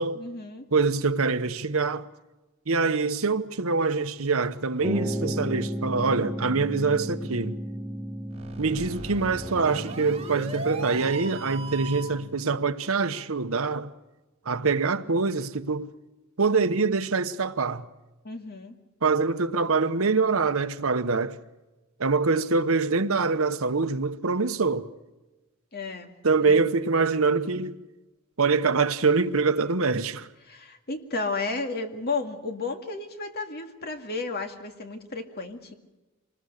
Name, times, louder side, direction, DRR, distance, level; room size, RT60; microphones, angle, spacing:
voice 1, 0.2-0.7 18.2-18.8 25.7-26.1 26.4-26.6 30.5-35.8, left 3 dB, 50° left, 2.0 m, -33 dB
voice 2, 0.7-2.1 2.7-7.6 8.6-13.9 14.4-15.9 16.4-17.8 19.0-21.4 22.0-24.9 26.2-27.8 28.4-30.3, right 4 dB, 75° right, 1.0 m, -24 dB
sound 1, 4.8-12.5, equal, ahead, 1.2 m, -35 dB
sound 2, 8.3-12.2, right 2 dB, 30° right, 6.2 m, -38 dB
25.5 x 20.0 x 6.6 m
head